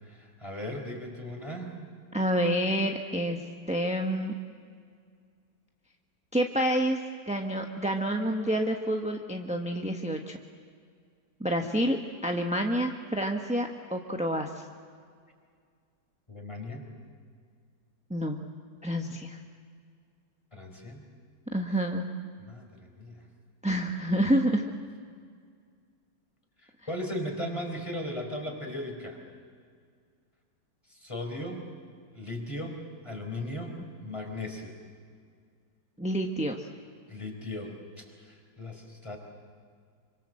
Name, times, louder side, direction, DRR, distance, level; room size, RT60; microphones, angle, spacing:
voice 1, 0.0-1.8 16.3-16.9 20.5-21.0 21.7-21.8 22.4-23.3 26.6-29.2 30.9-31.7 32.1-34.8 37.1-39.2, left 1 dB, 15° left, 2 dB, 4.3 m, -37 dB
voice 2, 2.1-4.3 6.3-10.4 11.4-14.5 18.1-18.4 18.8-19.4 21.5-22.1 23.6-24.6 36.0-36.6, equal, 5° right, 2 dB, 0.8 m, -28 dB
27.0 x 25.0 x 7.7 m, 2.1 s
omnidirectional pair, 2.0 m